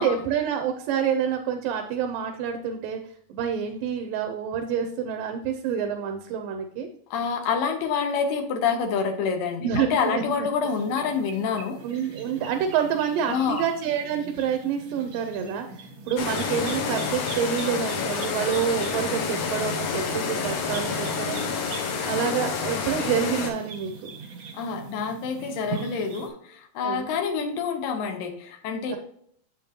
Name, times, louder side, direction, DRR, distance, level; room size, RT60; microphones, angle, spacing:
voice 1, 0.0-3.0 3.3-6.9 9.6-10.5 11.8-21.5 21.8-24.2 26.8-27.1 28.9-29.0, right 8 dB, 85° right, 5 dB, 2.4 m, -28 dB
voice 2, 7.1-11.8 13.3-13.6 24.5-29.0, left 6 dB, 85° left, 4 dB, 2.6 m, -27 dB
sound 1, 10.6-26.3, right 5 dB, 60° right, 1.3 m, -41 dB
sound 2, 16.2-23.5, left 6 dB, 65° left, 1.8 m, -29 dB
7.4 x 6.9 x 2.8 m, 0.65 s
omnidirectional pair, 3.8 m